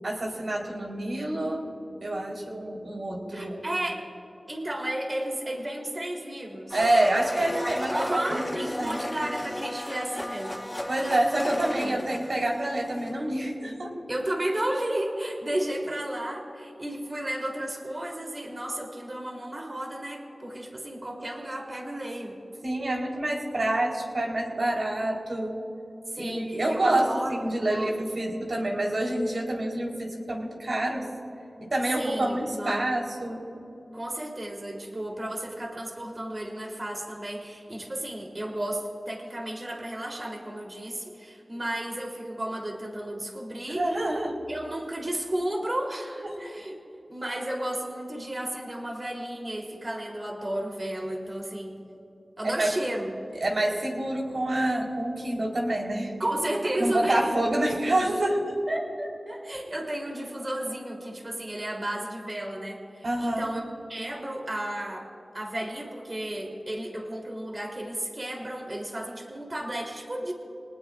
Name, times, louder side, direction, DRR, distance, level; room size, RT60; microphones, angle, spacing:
voice 1, 0.0-1.7 2.0-3.6 6.7-9.0 10.9-13.9 22.6-25.6 26.2-31.1 31.6-33.4 43.7-44.4 46.2-46.4 52.4-52.7 53.4-56.1 56.8-58.4 63.0-63.4, right 1 dB, 65° right, -1 dB, 4.1 m, -27 dB
voice 2, 3.3-4.0 4.5-6.8 7.9-10.7 14.1-22.4 26.1-28.1 31.9-32.9 33.9-43.9 44.5-46.8 47.1-51.8 52.4-53.1 56.2-57.4 58.7-63.6 63.9-65.1 65.3-70.3, right 1 dB, 35° right, 0 dB, 3.5 m, -33 dB
Domestic sounds home sounds, 6.7-13.3, left 1 dB, 15° left, 1.4 m, -34 dB
28.5 x 19.5 x 2.5 m, 2.8 s
wide cardioid pair, 55°, 0 cm